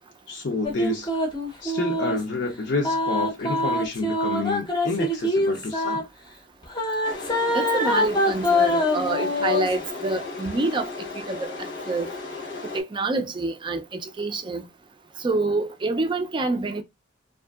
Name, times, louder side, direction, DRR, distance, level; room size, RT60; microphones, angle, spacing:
voice 1, 0.3-1.1 1.6-6.0, left 3 dB, 65° left, 0.6 m, -29 dB
sound 1, 0.6-2.2 2.8-6.0 6.7-9.7, left 1 dB, 25° left, 0.6 m, -24 dB
sound 2, 7.0-12.8, left 3 dB, 80° left, 0.9 m, -35 dB
voice 2, 7.5-10.9 11.1-11.5 11.9-12.1 12.7-14.6 15.2-16.8, right 2 dB, 25° right, 0.4 m, -27 dB
2.7 x 2.5 x 2.3 m
head